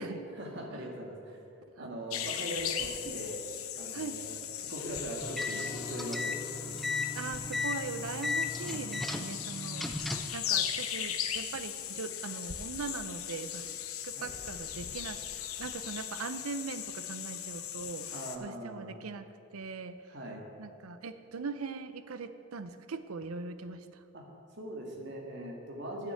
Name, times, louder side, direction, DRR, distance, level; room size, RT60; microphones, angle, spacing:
voice 1, 0.4-1.4 1.8-3.4 3.7-6.4 14.2-14.3 18.1-19.0 20.1-20.5 24.1-24.2 24.6-26.1, right 1 dB, 55° right, -1 dB, 1.9 m, -40 dB
sound 1, 2.1-18.4, left 10 dB, 85° left, 0.8 m, -38 dB
sound 2, 5.2-10.4, left 3 dB, ahead, 0.5 m, -36 dB
voice 2, 7.1-13.7 14.0-15.2 15.6-18.1 18.4-20.0 20.6-24.0, right 4 dB, 85° right, 11 dB, 0.6 m, -40 dB
9.2 x 6.8 x 8.4 m, 2.6 s
head